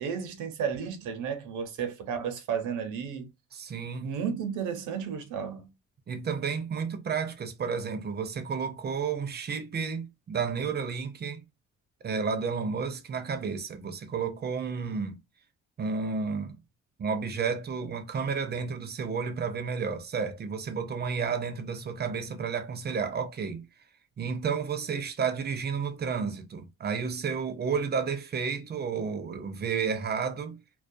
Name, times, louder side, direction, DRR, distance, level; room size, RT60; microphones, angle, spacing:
voice 1, 0.0-3.3 4.0-5.7, right 7 dB, 85° right, 0.7 m, -33 dB
voice 2, 3.5-4.1 6.1-11.4 12.0-15.2 15.8-16.6 17.0-23.7 24.2-30.6, right 5 dB, 35° right, 0.5 m, -31 dB
2.3 x 2.2 x 2.6 m
cardioid pair, 90°, 30 cm